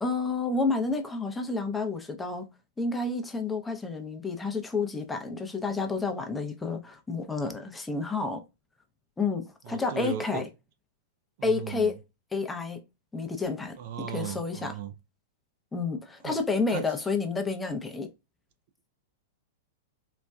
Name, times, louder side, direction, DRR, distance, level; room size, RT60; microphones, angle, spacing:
voice 1, 0.0-2.5 2.8-8.4 9.2-10.5 11.4-12.0 12.3-12.8 13.1-14.7 15.7-18.1, left 4 dB, 10° left, 0.6 m, -30 dB
voice 2, 9.6-10.5 11.4-11.9 13.8-14.9 16.2-16.4 16.7-16.9, right 9 dB, 55° right, 0.4 m, -37 dB
4.0 x 2.2 x 2.2 m
hypercardioid pair, 115°, 0 cm